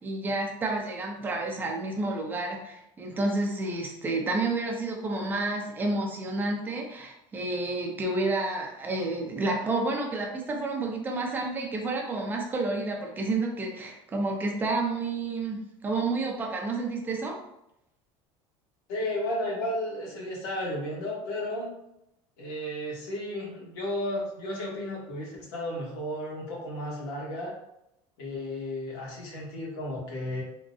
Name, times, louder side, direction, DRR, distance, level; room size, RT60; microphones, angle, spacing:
voice 1, 0.0-17.3, right 2 dB, 15° right, 0 dB, 0.5 m, -30 dB
voice 2, 18.9-21.7 22.4-27.5 28.2-30.4, left 1 dB, 85° left, -3 dB, 1.2 m, -33 dB
3.6 x 2.1 x 2.6 m, 0.83 s
cardioid pair, 165°, 12 cm